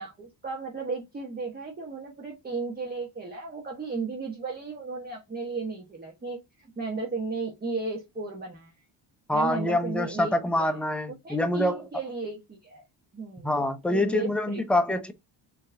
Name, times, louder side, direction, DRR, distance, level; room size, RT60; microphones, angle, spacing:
voice 1, 0.0-8.7 9.3-10.7 11.2-12.8 13.1-13.6 13.9-14.6, right 3 dB, 20° right, 1.1 m, -35 dB
voice 2, 9.3-11.8 13.4-15.1, left 1 dB, 5° left, 0.6 m, -26 dB
4.5 x 3.0 x 2.5 m
cardioid pair, 100°, 46 cm